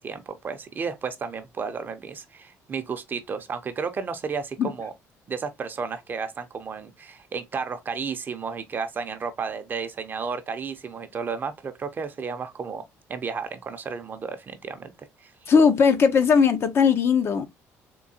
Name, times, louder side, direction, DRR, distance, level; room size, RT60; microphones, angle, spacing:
voice 1, 0.0-4.9 5.3-12.8 13.1-14.9 15.2-15.3, right 5 dB, 35° right, 0.6 m, -32 dB
voice 2, 15.5-17.5, left 6 dB, 45° left, 0.5 m, -18 dB
3.7 x 2.7 x 2.6 m
cardioid pair, 120°, 6 cm